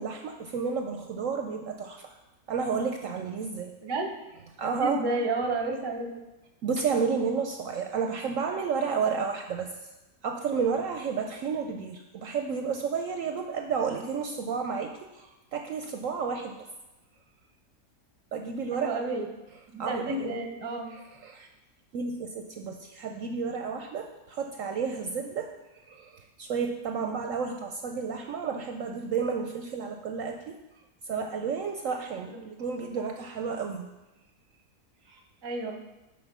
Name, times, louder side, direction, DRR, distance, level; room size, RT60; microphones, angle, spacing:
voice 1, 0.0-2.1 2.5-3.7 4.6-5.0 6.6-9.7 10.2-16.6 18.3-18.9 19.8-20.4 20.9-21.5 21.9-25.5 25.9-30.6 31.0-33.9 35.1-35.2, right 5 dB, 70° right, 4 dB, 0.8 m, -31 dB
voice 2, 3.8-4.2 4.6-6.1 18.7-19.3 19.7-20.9 32.3-32.4 35.4-35.7, right 2 dB, 25° right, 3 dB, 0.6 m, -31 dB
6.3 x 4.9 x 6.0 m, 1.0 s
omnidirectional pair, 1.7 m